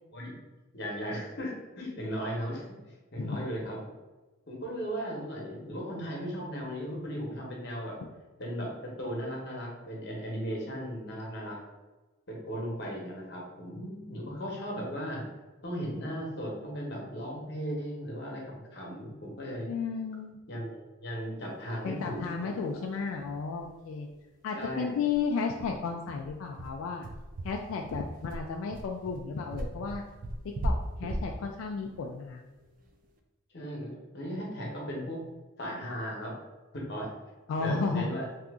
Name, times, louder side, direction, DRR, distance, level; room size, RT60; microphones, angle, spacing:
voice 1, 0.7-2.8 3.1-3.8 4.5-8.0 8.4-11.6 12.3-15.3 15.6-19.7 20.5-22.6 24.5-25.0 33.5-35.2 35.6-36.3 36.7-37.1 37.6-38.3, equal, 55° left, -2 dB, 0.9 m, -36 dB
voice 2, 19.7-20.4 21.8-24.1 24.4-27.1 27.4-30.0 30.6-30.7 31.0-32.4 37.5-38.1, left 5 dB, 90° left, 2 dB, 0.3 m, -33 dB
sound 1, 22.7-22.8 23.1-23.2 23.5-23.7 24.1-24.2 24.6-33.0, right 1 dB, 40° right, 0.3 m, -37 dB
2.8 x 2.4 x 3.5 m, 1.2 s
head